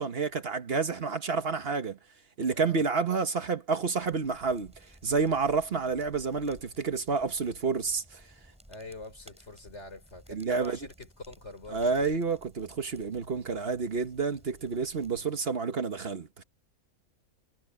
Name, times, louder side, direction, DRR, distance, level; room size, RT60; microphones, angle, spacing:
voice 1, 0.0-2.0 2.4-8.2 10.3-10.8 11.7-16.4, right 4 dB, 45° right, 1.3 m, -29 dB
voice 2, 2.5-2.8 8.7-12.1 15.1-15.4, left 2 dB, 50° left, 4.8 m, -45 dB
sound 1, 4.0-15.2, equal, 5° right, 6.0 m, -57 dB
omnidirectional pair, 1.5 m